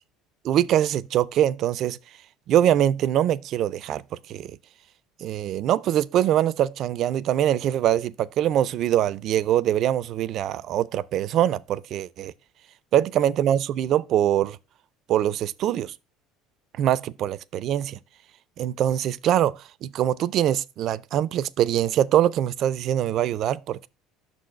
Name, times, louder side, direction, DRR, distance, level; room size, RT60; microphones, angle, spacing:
voice 1, 0.4-2.0 2.5-4.0 4.3-4.5 5.2-12.3 12.9-14.6 15.1-15.9 16.8-18.0 18.6-23.9, right 11 dB, 55° right, 0.3 m, -23 dB
6.1 x 4.0 x 5.5 m
hypercardioid pair, 80°, 0 cm